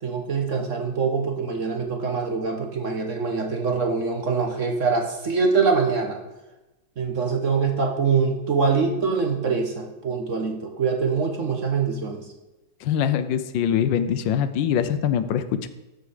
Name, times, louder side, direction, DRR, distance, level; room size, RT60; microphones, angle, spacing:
voice 1, 0.0-6.2 7.0-12.2, right 5 dB, 50° right, 3 dB, 1.1 m, -24 dB
voice 2, 12.8-15.7, left 9 dB, 80° left, 12 dB, 1.4 m, -23 dB
13.0 x 5.1 x 5.0 m, 1.1 s
omnidirectional pair, 2.1 m